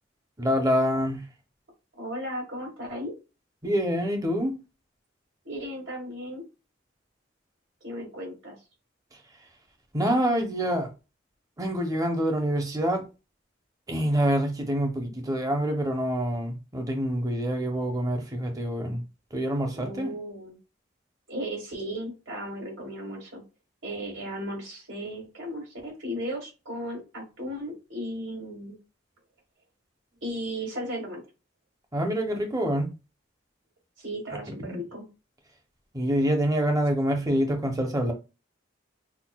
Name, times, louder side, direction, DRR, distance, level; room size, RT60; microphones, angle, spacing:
voice 1, 0.4-1.2 3.6-4.5 9.9-10.9 11.6-13.0 13.9-19.0 19.3-20.1 31.9-32.9 34.6-34.8 35.9-38.1, equal, 20° right, 0.7 m, -26 dB
voice 2, 1.9-3.1 5.4-6.4 7.8-8.6 19.8-20.6 21.3-23.4 23.8-28.8 30.2-31.2 34.0-35.0, equal, 85° right, 2.1 m, -35 dB
5.8 x 2.1 x 2.2 m
head